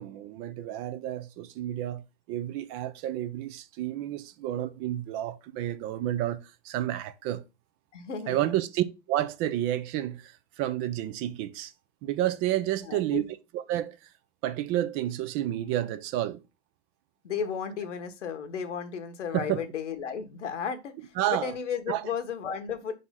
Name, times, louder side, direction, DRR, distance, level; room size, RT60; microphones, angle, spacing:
voice 1, 0.0-2.0 2.3-7.4 8.3-11.7 12.0-13.2 13.5-14.0 14.4-16.4 19.3-19.6 21.2-21.5 21.9-22.1, right 13 dB, 40° right, 0.6 m, -30 dB
voice 2, 7.9-8.5 12.9-13.3 17.2-22.9, left 7 dB, 80° left, 1.5 m, -34 dB
4.8 x 4.0 x 5.7 m
hypercardioid pair, 115°, 36 cm